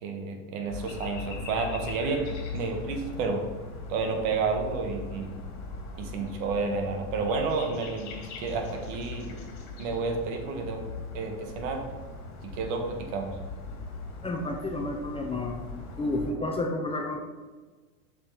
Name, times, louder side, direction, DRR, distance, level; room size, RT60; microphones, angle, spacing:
voice 1, 0.0-2.2 2.5-3.4 3.9-5.3 6.0-8.1 8.4-9.3 9.8-10.8 11.1-11.8 12.4-13.3, right 4 dB, 60° right, 4 dB, 1.5 m, -30 dB
sound 1, 0.7-16.3, left 3 dB, 40° left, 2.1 m, -40 dB
voice 2, 14.2-15.7 16.0-17.2, left 2 dB, 15° left, 2 dB, 0.7 m, -30 dB
6.9 x 5.9 x 3.9 m, 1.3 s
hypercardioid pair, 105°, 43 cm